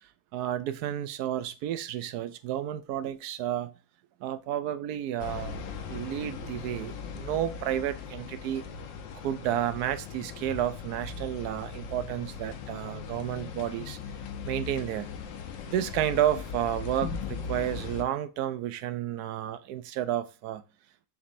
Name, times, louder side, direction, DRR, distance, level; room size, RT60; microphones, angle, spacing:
voice 1, 0.3-3.7 4.2-8.6 9.2-14.0 14.4-15.1 15.7-20.6, right 11 dB, 70° right, 0.9 m, -31 dB
sound 1, 5.2-18.0, left 6 dB, 75° left, 1.5 m, -39 dB
7.0 x 5.2 x 2.6 m
omnidirectional pair, 2.1 m